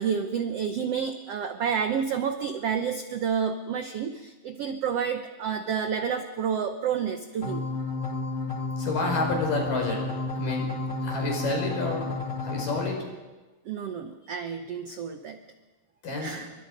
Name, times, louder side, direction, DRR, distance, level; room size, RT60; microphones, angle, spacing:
voice 1, 0.0-7.6 13.6-15.4 16.2-16.5, right 7 dB, 80° right, 8 dB, 1.4 m, -29 dB
sound 1, 7.4-12.9, left 3 dB, 30° left, 1.0 m, -31 dB
voice 2, 8.8-10.0 10.4-12.1 12.4-13.0 16.0-16.4, left 2 dB, 65° left, 1 dB, 6.9 m, -29 dB
29.0 x 24.0 x 5.3 m, 1.2 s
omnidirectional pair, 4.1 m